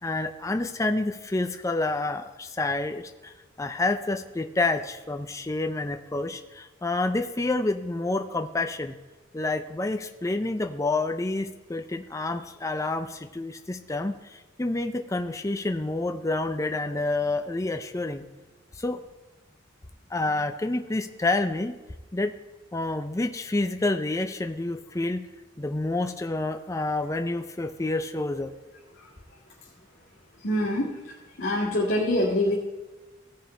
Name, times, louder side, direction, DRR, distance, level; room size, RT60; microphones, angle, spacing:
voice 1, 0.0-3.3 3.6-9.0 9.3-18.2 18.7-19.0 20.1-21.8 22.1-22.3 22.7-25.3 25.6-28.5, left 2 dB, 15° left, 7 dB, 0.4 m, -28 dB
voice 2, 30.4-32.6, left 1 dB, 70° left, -8 dB, 1.9 m, -26 dB
16.0 x 5.7 x 4.3 m, 1.2 s
head